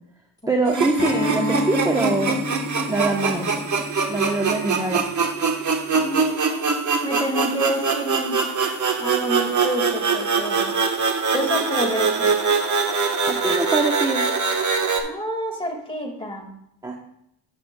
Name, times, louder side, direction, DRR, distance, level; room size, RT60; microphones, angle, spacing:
voice 1, 0.5-2.5 2.9-3.5 4.1-5.1 13.3-14.3 16.8-17.0, right 2 dB, 10° right, 2 dB, 0.8 m, -23 dB
sound 1, 0.7-15.0, right 5 dB, 45° right, 1.1 m, -23 dB
Acoustic guitar, 1.0-6.2, left 1 dB, 35° left, 1.0 m, -32 dB
voice 2, 5.9-8.4 9.0-10.7 11.3-12.3 15.0-16.5, equal, 10° left, 2 dB, 1.8 m, -28 dB
11.0 x 7.2 x 2.2 m, 0.78 s
cardioid pair, 100°, 42 cm